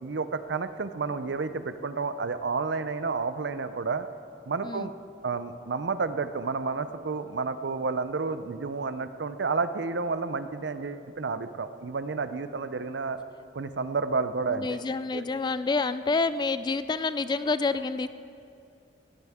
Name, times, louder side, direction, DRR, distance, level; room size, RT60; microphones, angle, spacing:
voice 1, 0.0-4.1 4.5-4.9 5.2-13.2 13.5-14.8 15.1-15.2, right 4 dB, 70° right, 11 dB, 0.6 m, -30 dB
voice 2, 14.5-18.1, left 3 dB, 25° left, 13 dB, 0.3 m, -28 dB
18.5 x 15.0 x 3.6 m, 2.5 s
head